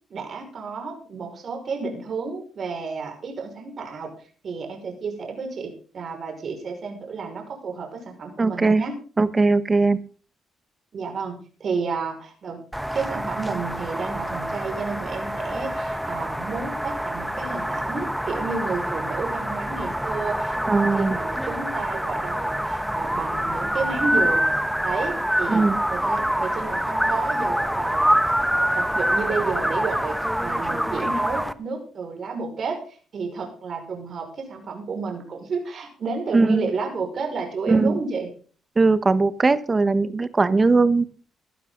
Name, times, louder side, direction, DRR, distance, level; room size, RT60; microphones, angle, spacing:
voice 1, 0.1-4.1 4.4-8.9 10.9-12.6 12.9-24.6 24.8-25.6 25.9-28.2 28.7-38.3, right 4 dB, 55° right, 3 dB, 5.5 m, -31 dB
voice 2, 8.4-8.8 9.2-10.0 20.7-21.2 25.5-25.8 36.3-36.6 37.7-38.0 38.8-41.0, right 3 dB, 25° right, 14 dB, 1.2 m, -19 dB
sound 1, 12.7-31.5, equal, 5° right, 1.1 m, -26 dB
17.5 x 12.0 x 3.9 m, 0.40 s
cardioid pair, 90°, 0 cm